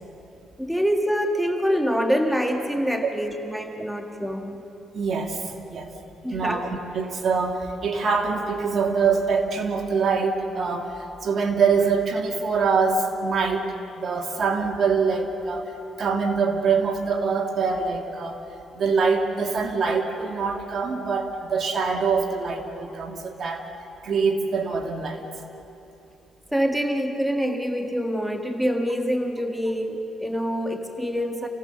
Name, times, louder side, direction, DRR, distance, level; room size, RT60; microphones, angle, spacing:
voice 1, 0.6-4.6 6.2-6.7 26.5-31.5, equal, ahead, 4 dB, 1.7 m, -25 dB
voice 2, 4.9-5.9 6.3-10.9 11.2-18.4 18.7-23.6 24.0-25.2, right 5 dB, 55° right, 3 dB, 2.3 m, -24 dB
28.5 x 17.0 x 6.9 m, 3.0 s
cardioid pair, 90°, 0 cm